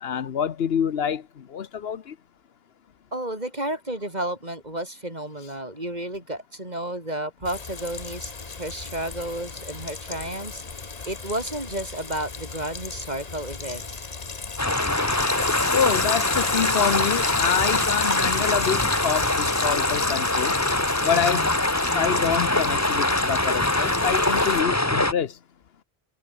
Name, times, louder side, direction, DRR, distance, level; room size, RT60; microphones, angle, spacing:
voice 1, 0.0-2.1 15.7-20.6 21.0-21.5 21.9-25.3, left 8 dB, 75° left, 1.1 m, -26 dB
voice 2, 3.1-10.6 11.0-14.0, right 1 dB, 45° right, 6.2 m, -32 dB
Frying (food), 7.4-24.6, left 4 dB, 40° left, 1.3 m, -32 dB
sound 1, 14.6-25.1, left 1 dB, 15° left, 1.6 m, -24 dB
omnidirectional pair, 1.0 m